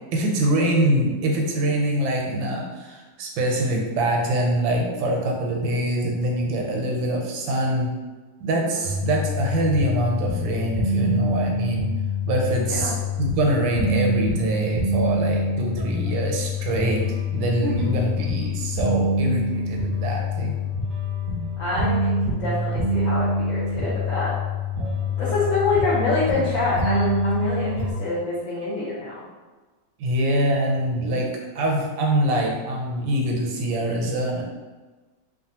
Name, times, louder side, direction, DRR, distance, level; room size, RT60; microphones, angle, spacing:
voice 1, 0.1-7.9 8.4-11.9 12.2-20.6 30.0-31.3 31.5-34.4, right 1 dB, 85° right, 0 dB, 1.3 m, -24 dB
voice 2, 8.5-8.9 12.6-12.9 17.6-17.7 21.6-24.4 25.2-29.1, left 3 dB, 60° left, -9 dB, 0.9 m, -26 dB
sound 1, 8.8-27.9, left 2 dB, 65° right, 0.9 m, -25 dB
3.1 x 2.3 x 2.8 m, 1.3 s
omnidirectional pair, 2.0 m